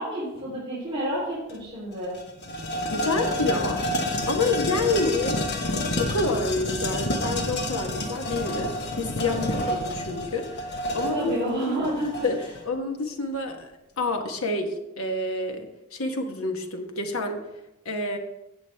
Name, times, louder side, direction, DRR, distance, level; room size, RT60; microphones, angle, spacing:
voice 1, 0.0-2.2 9.3-9.7 11.0-12.3, equal, 25° right, -9 dB, 3.5 m, -30 dB
sound 1, 1.5-1.6 1.9-12.6, left 1 dB, 50° left, 1.2 m, -29 dB
voice 2, 2.9-3.8 4.3-5.4 6.0-11.3 11.7-11.9 12.2-12.4 12.6-13.7 14.0-17.4 17.8-18.2, left 2 dB, 70° left, 4 dB, 1.3 m, -28 dB
16.5 x 6.2 x 3.5 m, 0.90 s
head